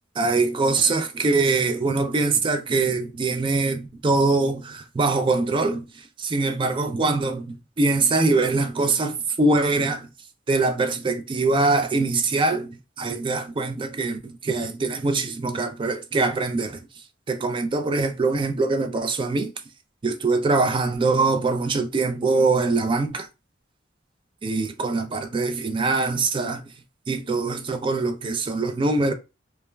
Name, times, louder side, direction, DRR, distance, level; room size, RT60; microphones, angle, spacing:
voice 1, 0.2-10.1 10.5-16.8 17.3-19.5 20.0-23.3 24.4-26.7 27.1-29.1, right 3 dB, 25° right, 0.3 m, -23 dB
2.2 x 2.2 x 3.1 m
head